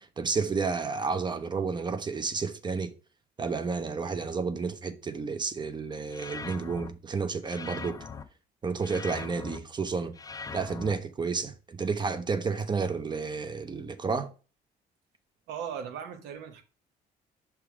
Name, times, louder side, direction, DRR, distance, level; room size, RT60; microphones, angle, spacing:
voice 1, 0.2-2.9 3.4-8.0 8.6-10.2 10.5-14.3, right 4 dB, 25° right, 0.6 m, -31 dB
sound 1, 6.1-6.9 7.5-8.2 8.8-9.6 10.2-10.9, left 4 dB, 20° left, 0.5 m, -40 dB
voice 2, 15.5-16.6, right 8 dB, 90° right, 1.1 m, -38 dB
5.9 x 3.5 x 4.7 m
cardioid pair, 110°, 17 cm